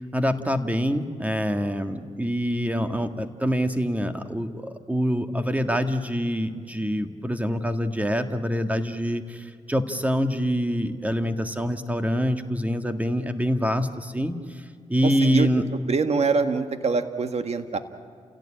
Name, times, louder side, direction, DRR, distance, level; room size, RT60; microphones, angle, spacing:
voice 1, 0.1-15.6, equal, 10° right, 7 dB, 1.8 m, -25 dB
voice 2, 15.0-15.5 15.9-17.8, right 4 dB, 60° right, 7 dB, 1.8 m, -24 dB
30.0 x 17.0 x 8.8 m, 2.2 s
cardioid pair, 65°, 12 cm